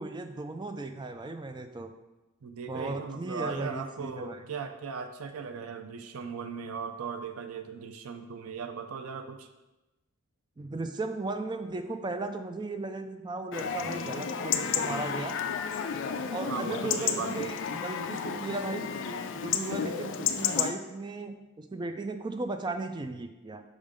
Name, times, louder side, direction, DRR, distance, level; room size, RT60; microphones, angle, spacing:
voice 1, 0.0-1.9 2.7-4.4 10.6-15.4 16.3-17.6 17.8-18.9 19.3-23.6, right 2 dB, 20° right, 7 dB, 0.4 m, -36 dB
voice 2, 2.4-9.5 16.5-17.5, right 5 dB, 75° right, 7 dB, 0.5 m, -38 dB
Chatter / Livestock farm animals working animals / Chirp tweet, 13.5-20.7, left 7 dB, 60° left, 0.4 m, -32 dB
5.2 x 3.7 x 5.1 m, 1.1 s
head